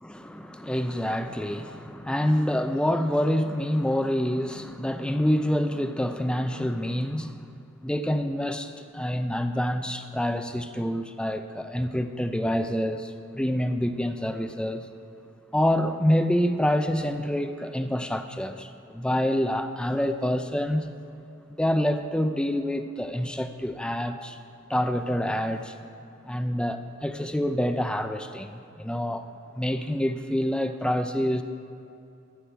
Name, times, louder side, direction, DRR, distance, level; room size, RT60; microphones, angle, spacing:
voice 1, 0.0-7.5 7.8-14.9 15.5-20.9 21.5-24.4 24.7-25.7 26.2-29.3 29.6-31.4, equal, 5° left, 8 dB, 0.5 m, -27 dB
13.5 x 9.5 x 5.7 m, 2.7 s
head